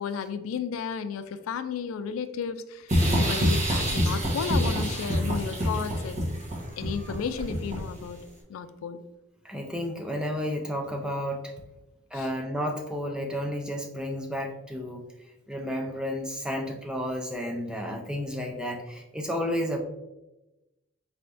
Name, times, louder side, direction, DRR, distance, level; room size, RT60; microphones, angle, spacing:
voice 1, 0.0-6.3 6.8-8.2 8.5-9.0 12.1-12.3, left 6 dB, 75° left, 10 dB, 0.3 m, -33 dB
sound 1, 2.9-8.0, equal, 35° right, 1.1 m, -26 dB
voice 2, 9.4-11.5 12.1-19.8, equal, 5° right, 2 dB, 0.4 m, -32 dB
4.2 x 3.3 x 2.5 m, 0.99 s
head